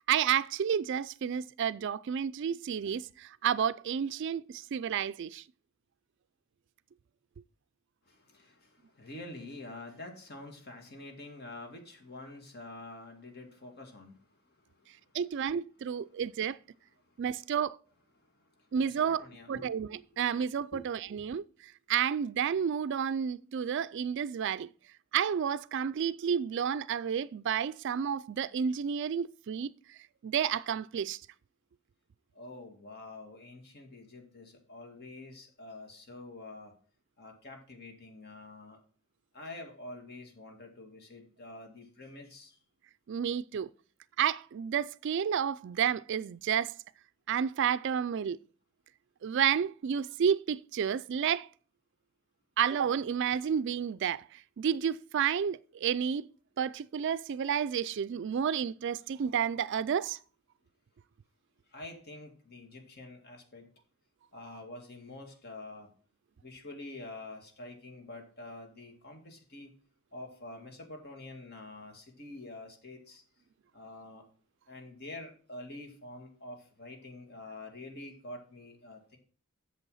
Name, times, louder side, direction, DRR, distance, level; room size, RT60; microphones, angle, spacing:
voice 1, 0.1-5.4 15.1-16.6 17.2-17.8 18.7-19.2 19.5-21.4 21.9-24.7 25.1-29.7 30.2-31.2 43.1-43.7 44.2-46.7 47.3-48.4 49.2-51.5 52.6-56.3 56.6-60.2, right 8 dB, 60° right, 0.3 m, -31 dB
voice 2, 8.1-15.0 17.0-17.1 18.4-19.7 20.1-20.2 20.7-20.9 21.1-21.3 32.3-36.7 37.2-38.8 39.3-42.6 61.7-63.7 64.3-65.9 66.4-69.7 70.1-73.2 73.7-74.2 74.7-79.2, left 2 dB, 50° left, 2.2 m, -47 dB
8.1 x 6.9 x 5.6 m
head